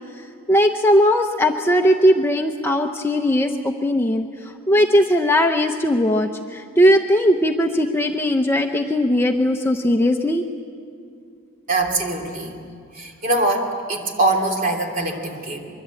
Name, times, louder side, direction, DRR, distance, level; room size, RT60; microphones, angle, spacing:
voice 1, 0.5-4.3 4.7-10.4, equal, 10° left, 4 dB, 0.7 m, -18 dB
voice 2, 11.7-12.6 12.9-15.7, right 2 dB, 35° right, 2 dB, 3.0 m, -23 dB
24.5 x 23.0 x 8.4 m, 2.3 s
head